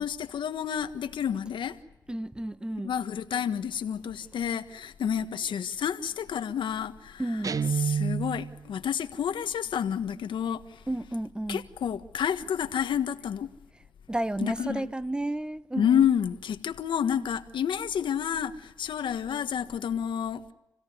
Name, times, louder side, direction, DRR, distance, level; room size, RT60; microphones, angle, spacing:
voice 1, 0.0-1.8 2.8-7.5 7.8-10.8 11.5-13.5 14.4-14.9 15.8-20.5, left 8 dB, 90° left, 1.5 m, -29 dB
voice 2, 2.1-2.9 7.2-7.6 10.9-11.7 14.1-16.0, right 1 dB, 10° right, 1.0 m, -32 dB
Guitar, 7.4-8.6, right 6 dB, 45° right, 0.9 m, -28 dB
29.0 x 17.0 x 9.6 m
cardioid pair, 85°, 8 cm